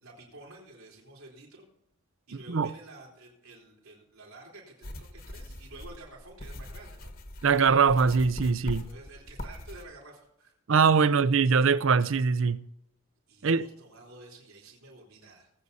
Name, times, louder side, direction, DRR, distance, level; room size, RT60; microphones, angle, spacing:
voice 1, 0.0-1.7 2.3-7.1 8.8-10.5 11.0-11.1 13.3-15.5, right 2 dB, 80° right, 4.0 m, -50 dB
sound 1, 4.8-9.8, left 1 dB, 40° left, 1.3 m, -41 dB
voice 2, 7.4-8.8 10.7-12.6 13.4-13.7, right 5 dB, 65° right, 0.6 m, -22 dB
19.5 x 8.3 x 4.2 m
head